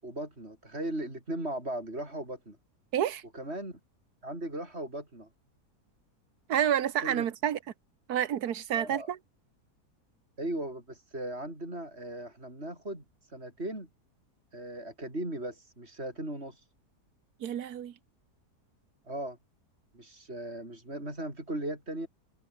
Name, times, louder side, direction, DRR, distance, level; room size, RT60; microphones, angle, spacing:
voice 1, 0.0-2.6 3.3-3.8 4.2-5.3 7.0-7.2 8.7-9.1 10.4-13.9 14.5-16.7 19.1-19.4 19.9-22.1, right 1 dB, 40° right, 7.8 m, -38 dB
voice 2, 2.9-3.2 6.5-7.6 8.1-9.2 17.4-17.9, right 10 dB, 75° right, 1.6 m, -29 dB
omnidirectional pair, 1.7 m